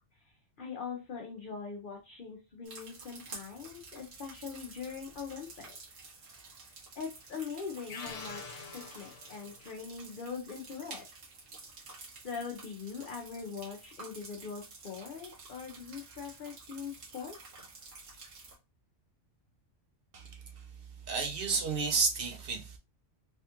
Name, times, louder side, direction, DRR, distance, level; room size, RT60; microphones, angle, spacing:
voice 1, 0.6-6.0 7.0-11.0 12.2-17.3, left 6 dB, 50° left, 0.7 m, -42 dB
sound 1, 2.6-18.6, right 3 dB, 85° right, 1.4 m, -50 dB
sound 2, 7.9-9.8, left 5 dB, 75° left, 1.1 m, -46 dB
voice 2, 20.1-20.6 21.1-22.8, right 4 dB, 60° right, 0.7 m, -32 dB
3.5 x 2.3 x 2.8 m
omnidirectional pair, 1.3 m